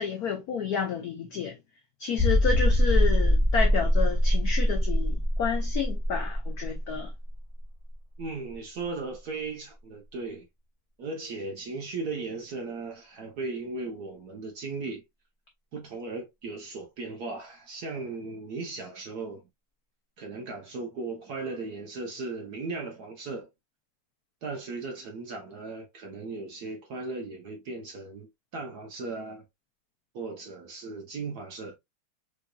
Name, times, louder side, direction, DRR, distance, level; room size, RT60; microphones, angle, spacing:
voice 1, 0.0-1.6 2.0-7.1, left 6 dB, 90° left, 0.8 m, -30 dB
sound 1, 2.2-7.6 7.9-8.0 8.5-8.6, equal, 10° right, 0.9 m, -23 dB
voice 2, 8.2-10.5 11.0-15.0 15.7-19.4 20.2-23.5 24.4-29.4 30.1-31.8, right 3 dB, 65° right, 1.0 m, -37 dB
4.8 x 2.6 x 2.2 m
omnidirectional pair, 2.4 m